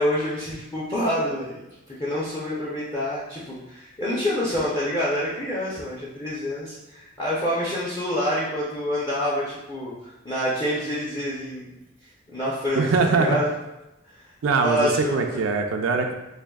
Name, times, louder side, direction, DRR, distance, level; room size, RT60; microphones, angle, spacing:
voice 1, 0.0-1.6 2.0-11.7 12.3-13.5 14.1-14.2 14.6-15.4, left 1 dB, 25° left, -8 dB, 0.6 m, -27 dB
voice 2, 12.8-13.4 14.4-16.1, right 4 dB, 85° right, 3 dB, 0.4 m, -22 dB
4.9 x 2.5 x 2.3 m, 0.94 s
head